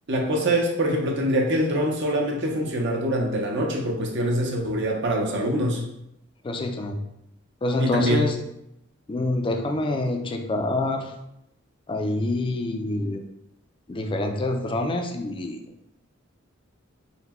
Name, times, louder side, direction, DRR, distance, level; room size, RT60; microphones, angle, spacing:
voice 1, 0.1-5.8 7.8-8.3, right 1 dB, 60° right, 1 dB, 0.7 m, -24 dB
voice 2, 6.4-7.0 7.6-8.4 9.1-11.1 11.9-13.2 13.9-15.6, left 2 dB, 25° left, 4 dB, 0.4 m, -26 dB
4.1 x 2.2 x 4.1 m, 0.82 s
head